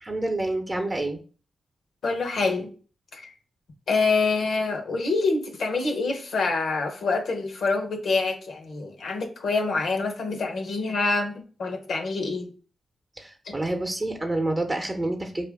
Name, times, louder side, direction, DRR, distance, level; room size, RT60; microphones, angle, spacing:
voice 1, 0.0-1.2 13.2-15.5, right 2 dB, 25° right, 0.7 m, -28 dB
voice 2, 2.0-2.7 3.1-3.3 3.9-12.5 13.5-13.6, left 3 dB, 75° left, 0.8 m, -26 dB
4.3 x 2.5 x 3.5 m
cardioid pair, 55°, 0 cm